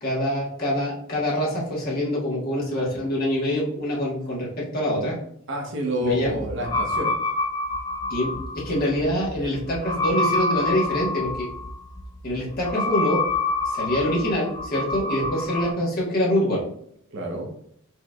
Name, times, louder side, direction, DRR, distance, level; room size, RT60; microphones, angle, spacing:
voice 1, 0.0-5.1 6.0-6.3 8.1-8.3 8.6-11.3 12.2-13.2 13.6-16.6, equal, 45° left, -5 dB, 1.3 m, -25 dB
voice 2, 5.5-7.1 17.1-17.5, equal, 60° right, 2 dB, 0.8 m, -28 dB
sound 1, 6.2-15.7, left 2 dB, 20° left, 0.4 m, -27 dB
4.6 x 3.1 x 2.3 m, 0.68 s
head